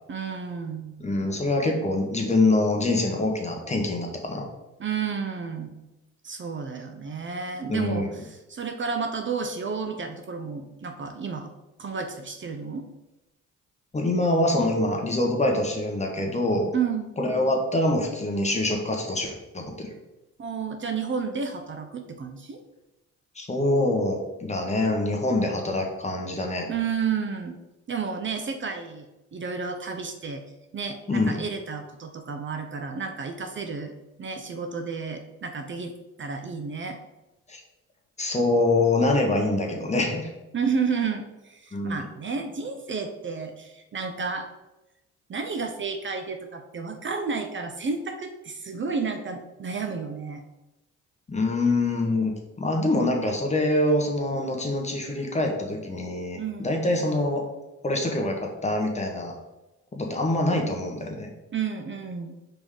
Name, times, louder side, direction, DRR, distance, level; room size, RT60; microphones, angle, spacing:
voice 1, 0.1-1.0 4.8-5.7 6.2-11.5 11.8-12.8 16.7-17.1 20.4-22.6 26.7-27.6 27.9-30.4 30.7-33.9 34.2-35.9 36.2-37.0 40.5-44.5 45.3-50.4 56.4-56.8 61.5-62.3, right 5 dB, 40° right, 5 dB, 0.7 m, -31 dB
voice 2, 1.0-4.5 7.7-8.1 13.9-16.7 17.2-19.9 23.3-26.7 31.1-31.3 37.5-37.6 38.2-40.3 41.7-42.0 51.3-52.3 52.6-57.4 57.8-59.3 59.9-61.3, left 2 dB, 20° left, 2 dB, 1.3 m, -25 dB
5.1 x 3.8 x 5.0 m, 0.98 s
cardioid pair, 90°, 30 cm